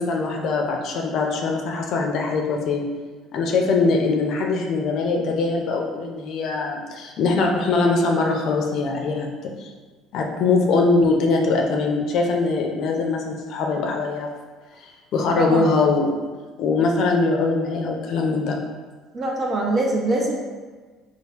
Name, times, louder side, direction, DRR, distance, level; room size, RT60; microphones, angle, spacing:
voice 1, 0.0-2.8 3.3-9.3 9.6-9.7 10.1-14.3 14.8-16.2 16.6-18.6, left 3 dB, 65° left, 1 dB, 0.5 m, -22 dB
voice 2, 15.4-15.7 19.1-20.4, right 2 dB, 40° right, -2 dB, 0.8 m, -23 dB
3.2 x 2.3 x 3.4 m, 1.4 s
supercardioid pair, 90°, 0 cm